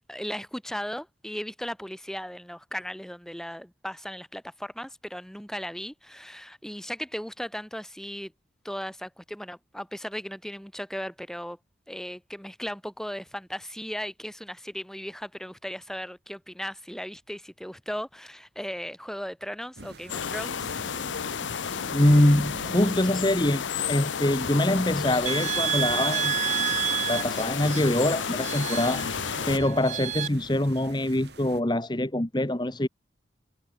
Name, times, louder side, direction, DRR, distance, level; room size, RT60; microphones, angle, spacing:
voice 1, 0.0-8.3 8.6-11.6 11.9-20.8, equal, 5° left, 3.9 m, -37 dB
sound 1, 19.8-31.6, right 2 dB, 65° right, 3.4 m, -46 dB
sound 2, 20.1-29.6, left 7 dB, 90° left, 0.7 m, -32 dB
voice 2, 21.9-26.7 27.1-29.0 29.5-32.9, left 1 dB, 25° left, 1.1 m, -24 dB
sound 3, 25.3-30.3, right 9 dB, 35° right, 0.4 m, -30 dB
head